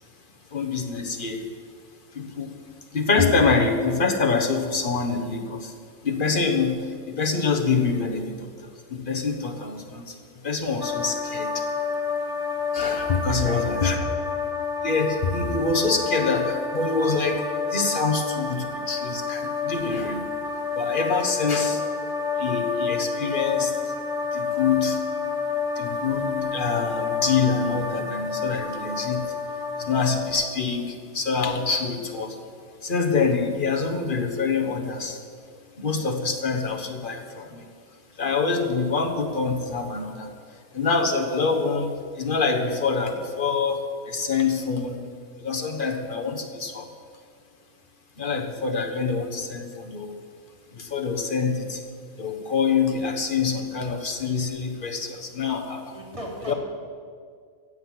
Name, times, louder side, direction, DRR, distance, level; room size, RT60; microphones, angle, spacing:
voice 1, 0.5-1.4 2.1-2.5 2.9-5.7 6.0-8.5 8.9-10.2 10.4-11.7 12.7-14.0 14.8-17.4 17.7-20.3 20.7-21.8 22.4-23.9 24.3-25.0 25.7-29.3 29.8-32.4 32.8-35.2 35.8-37.7 38.2-40.3 40.7-45.1 45.4-46.9 48.2-50.2 50.7-51.8 52.1-56.0 56.5-56.6, left 4 dB, 40° left, 3 dB, 1.4 m, -25 dB
sound 1, 10.8-30.3, left 5 dB, 5° right, 1.2 m, -29 dB
voice 2, 13.2-14.1 55.9-56.5, right 1 dB, 25° right, -2 dB, 2.8 m, -37 dB
15.5 x 7.9 x 7.8 m, 2.1 s
omnidirectional pair, 1.4 m